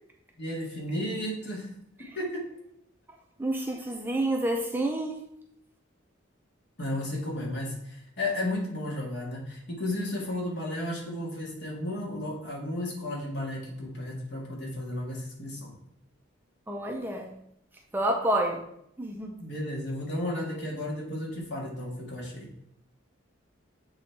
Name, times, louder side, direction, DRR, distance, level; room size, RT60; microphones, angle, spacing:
voice 1, 0.4-1.7 2.2-2.3 6.8-15.7 19.4-22.5, left 1 dB, 55° left, -2 dB, 1.8 m, -33 dB
voice 2, 3.4-5.2 16.7-17.3 17.9-18.6 19.0-19.3, right 1 dB, 10° right, 1 dB, 0.5 m, -28 dB
7.8 x 3.1 x 4.5 m, 0.76 s
head